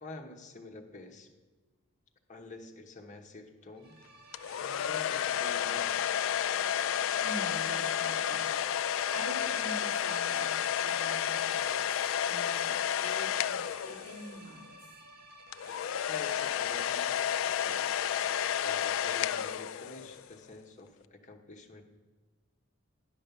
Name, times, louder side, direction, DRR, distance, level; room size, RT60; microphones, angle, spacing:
voice 1, 0.0-1.3 2.3-4.0 4.6-6.0 16.1-17.9 18.6-21.8, left 2 dB, 35° left, 2 dB, 1.1 m, -48 dB
sound 1, 3.7-19.5, right 2 dB, 45° right, 1.1 m, -53 dB
sound 2, 4.3-14.5 15.5-20.2, left 9 dB, 65° left, 0.3 m, -31 dB
voice 2, 7.2-8.4 9.1-11.8 12.2-14.6, equal, 60° right, -5 dB, 3.9 m, -45 dB
10.5 x 5.4 x 6.8 m, 1.3 s
head